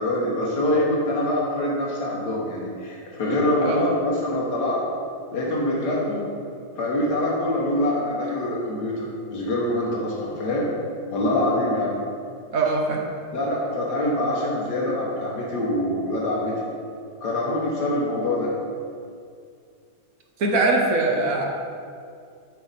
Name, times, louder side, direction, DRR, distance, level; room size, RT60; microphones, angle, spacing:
voice 1, 0.0-4.8 5.3-6.2 6.7-10.7 11.1-12.0 13.3-16.6 17.2-18.5, left 1 dB, 80° left, -5 dB, 1.7 m, -24 dB
voice 2, 12.5-13.1 20.4-21.5, right 2 dB, 60° right, 1 dB, 1.2 m, -22 dB
7.4 x 5.7 x 4.0 m, 2.3 s
omnidirectional pair, 1.8 m